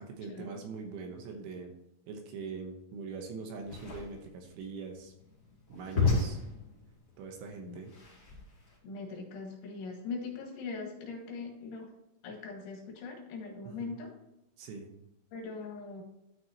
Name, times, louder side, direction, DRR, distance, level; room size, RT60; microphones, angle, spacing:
voice 1, 0.0-1.7 2.1-5.1 5.7-6.4 7.2-7.9 13.6-14.0 14.6-14.9, right 4 dB, 75° right, 3 dB, 3.1 m, -42 dB
sound 1, 3.6-8.8, left 4 dB, 30° left, 2.6 m, -34 dB
voice 2, 8.8-11.9 12.2-14.1 15.3-16.0, left 4 dB, 70° left, 1 dB, 3.8 m, -41 dB
13.0 x 6.0 x 2.9 m, 0.87 s
omnidirectional pair, 5.8 m